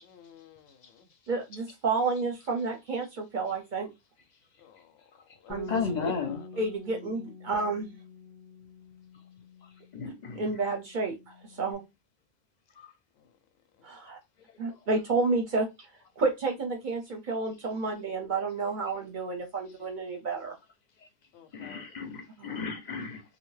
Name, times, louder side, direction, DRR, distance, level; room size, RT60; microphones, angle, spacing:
voice 1, 0.0-1.1 4.6-5.0 5.4-5.6 5.8-6.5 13.2-13.3 21.3-21.8, left 9 dB, 90° left, 0.9 m, -54 dB
voice 2, 1.3-3.9 5.5-5.8 6.6-8.0 10.3-11.8 13.8-14.2 14.6-15.7 16.2-20.5 22.4-22.6, right 3 dB, 55° right, 0.7 m, -30 dB
Bass guitar, 5.5-10.2 10.5-11.7, left 2 dB, 5° left, 0.4 m, -47 dB
voice 3, 5.7-6.4 9.9-10.4 21.6-23.2, left 6 dB, 55° left, 0.5 m, -33 dB
2.6 x 2.1 x 3.1 m
omnidirectional pair, 1.1 m